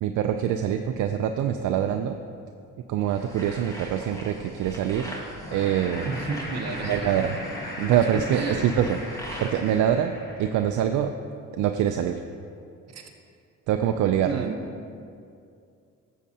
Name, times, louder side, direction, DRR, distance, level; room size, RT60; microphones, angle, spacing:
voice 1, 0.0-2.2 2.9-5.1 5.5-6.1 6.8-7.4 7.8-9.0 9.4-10.1 10.4-11.1 11.5-12.2 13.7-14.4, right 9 dB, 75° right, 6 dB, 0.5 m, -24 dB
sound 1, 3.1-9.9, equal, 10° left, 1.6 m, -41 dB
sound 2, 5.4-10.9, left 1 dB, 35° left, 1.3 m, -37 dB
voice 2, 6.1-7.3 8.1-8.7 12.9-13.1 14.2-14.6, right 5 dB, 60° right, 4 dB, 1.0 m, -32 dB
12.0 x 7.4 x 2.8 m, 2.4 s
cardioid pair, 90°, 30 cm